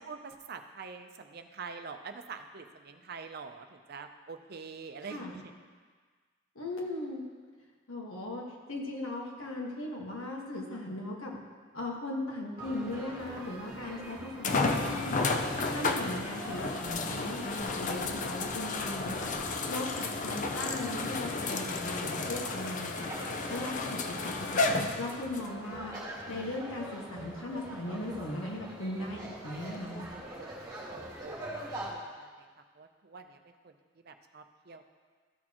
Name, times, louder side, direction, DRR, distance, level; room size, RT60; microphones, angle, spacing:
voice 1, 0.0-5.5 23.6-23.7 30.4-32.5 32.8-33.7 34.0-34.8, right 5 dB, 50° right, 7 dB, 0.6 m, -46 dB
voice 2, 5.0-5.4 6.5-7.2 7.9-11.4 11.7-15.2 15.6-19.3 19.7-23.1 23.5-24.6 25.0-26.0 26.3-30.1, left 1 dB, 90° left, -1 dB, 1.6 m, -38 dB
sound 1, 12.6-31.9, right 1 dB, 20° right, 2.0 m, -44 dB
sound 2, 13.4-13.5 14.4-25.5 26.2-26.3 29.7-29.8, left 3 dB, 40° left, 0.5 m, -32 dB
13.5 x 6.4 x 3.0 m, 1.5 s
head